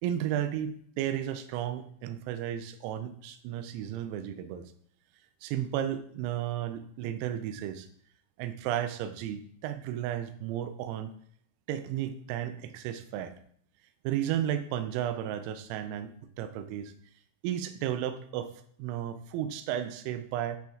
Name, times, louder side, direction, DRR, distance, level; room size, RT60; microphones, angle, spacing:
voice 1, 0.0-4.7 5.4-7.9 8.4-11.1 11.7-13.3 14.0-16.9 17.4-18.5 18.8-20.6, right 11 dB, 85° right, 9 dB, 3.2 m, -33 dB
9.5 x 4.4 x 2.3 m, 0.62 s
omnidirectional pair, 5.9 m